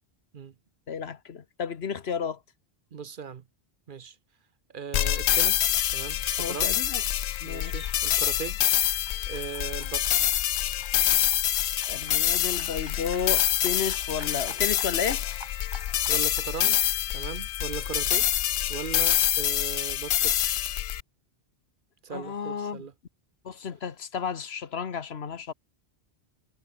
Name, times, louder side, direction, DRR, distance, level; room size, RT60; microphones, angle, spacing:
voice 1, 0.9-2.4 6.4-7.0 7.4-8.0 11.8-15.2 22.1-22.8 23.4-25.5, left 6 dB, 70° left, 1.4 m, -32 dB
voice 2, 2.9-3.4 3.9-4.2 4.7-6.8 7.4-8.6 9.3-10.1 16.1-16.8 17.1-18.3 18.7-20.3 22.0-22.9, right 6 dB, 55° right, 0.9 m, -38 dB
sound 1, 4.9-21.0, left 12 dB, 90° left, 0.9 m, -26 dB
sound 2, 6.1-16.5, right 1 dB, 25° right, 5.9 m, -50 dB
omnidirectional pair, 1.1 m